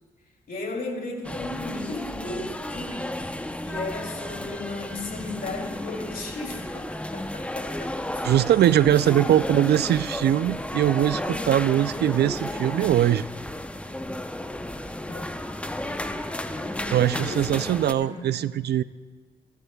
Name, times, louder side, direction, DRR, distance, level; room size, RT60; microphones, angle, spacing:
voice 1, 0.5-3.2 3.6-8.3 9.0-9.4 12.0-12.1 15.1-15.3 15.6-18.5, left 2 dB, 60° left, 1 dB, 3.2 m, -36 dB
sound 1, 1.2-17.9, left 1 dB, 5° left, 0.7 m, -33 dB
voice 2, 8.2-13.3 16.8-18.8, right 11 dB, 70° right, 16 dB, 0.4 m, -21 dB
23.0 x 11.0 x 2.3 m, 1.5 s
cardioid pair, 65°, 17 cm